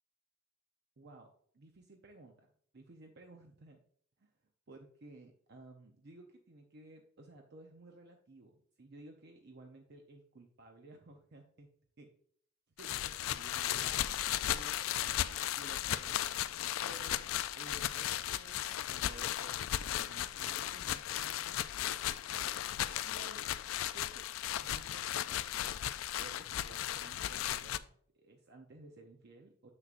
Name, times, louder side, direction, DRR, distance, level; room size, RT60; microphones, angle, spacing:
voice 1, 1.0-1.3 1.5-3.8 4.2-4.3 4.7-11.7 12.0-12.1 12.8-16.4 16.8-17.2 17.5-23.5 23.9-24.3 24.6-25.7 26.2-27.9 28.1-29.7, right 2 dB, 55° right, 3 dB, 0.7 m, -55 dB
sound 1, 12.8-27.8, left 12 dB, 85° left, 0.3 m, -36 dB
7.6 x 6.4 x 2.5 m, 0.62 s
head